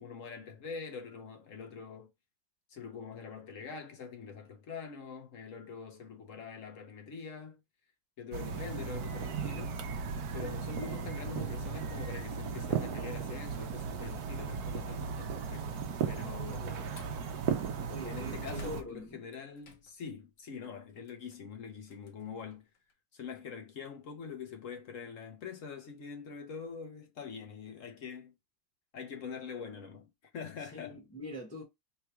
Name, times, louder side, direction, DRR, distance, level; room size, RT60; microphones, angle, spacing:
voice 1, 0.0-2.1 2.7-7.6 8.2-9.8 10.3-16.7 18.1-22.6 23.1-28.3 28.9-31.0, left 6 dB, 55° left, 1.0 m, -44 dB
sound 1, 8.3-18.8, right 6 dB, 65° right, 1.1 m, -36 dB
Slam, 16.5-17.2 17.8-20.1 20.5-22.9, left 1 dB, 70° left, 1.4 m, -52 dB
voice 2, 16.6-17.0 17.9-19.3 30.7-31.6, equal, 10° left, 0.8 m, -44 dB
3.8 x 2.4 x 4.4 m
omnidirectional pair, 2.0 m